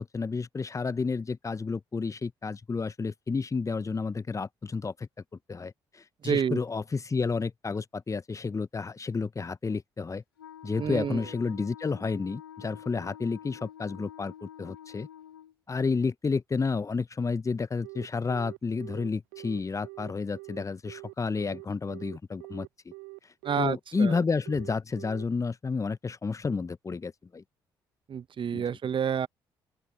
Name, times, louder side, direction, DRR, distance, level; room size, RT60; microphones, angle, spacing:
voice 1, 0.0-5.1 5.5-5.7 6.2-10.2 10.6-15.1 15.7-22.7 23.6-27.4 28.5-28.6, left 4 dB, 25° left, 0.9 m, -31 dB
voice 2, 6.2-6.6 10.8-11.2 23.4-24.2 28.1-29.3, right 7 dB, 45° right, 1.0 m, -29 dB
Wind instrument woodwind instrument, 10.4-15.5, left 10 dB, 90° left, 3.1 m, -47 dB
Telephone, 17.8-25.2, right 28 dB, 75° right, 0.8 m, -44 dB
open air
figure-of-eight pair, 45°, 12 cm